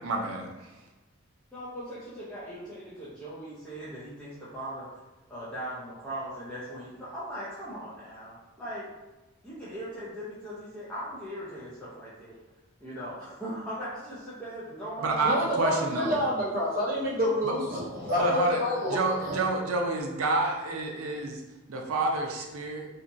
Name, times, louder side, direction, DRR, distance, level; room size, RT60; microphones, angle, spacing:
voice 1, 0.0-0.7 15.0-16.1 17.4-17.5 18.1-18.6 18.9-21.4 21.7-22.9, right 2 dB, 85° right, 2 dB, 0.5 m, -29 dB
voice 2, 1.5-4.9 5.3-8.9 9.4-12.4 12.8-15.4, equal, 5° left, -11 dB, 0.5 m, -39 dB
voice 3, 15.2-19.5, left 1 dB, 40° right, -5 dB, 0.8 m, -28 dB
2.8 x 2.3 x 2.6 m, 1.1 s
head